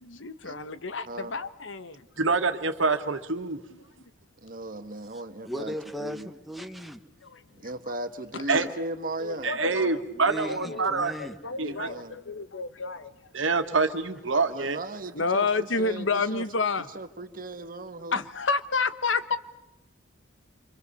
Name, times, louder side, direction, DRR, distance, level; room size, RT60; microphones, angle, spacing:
voice 1, 0.0-2.0 3.7-3.8 7.2-7.4 9.2-10.0 10.3-10.9 11.2-13.1 15.1-16.9 18.1-19.4, left 4 dB, 70° left, 1.2 m, -30 dB
voice 2, 2.2-3.6 8.5-8.7 9.4-11.1 11.6-11.9 13.3-14.8, right 4 dB, 80° right, 1.9 m, -26 dB
voice 3, 4.4-6.3 7.6-9.6 11.6-12.2 14.5-16.5 16.9-18.2, right 2 dB, 45° right, 1.6 m, -37 dB
voice 4, 5.4-7.0 10.1-11.4, equal, ahead, 1.3 m, -37 dB
27.0 x 25.5 x 7.0 m
head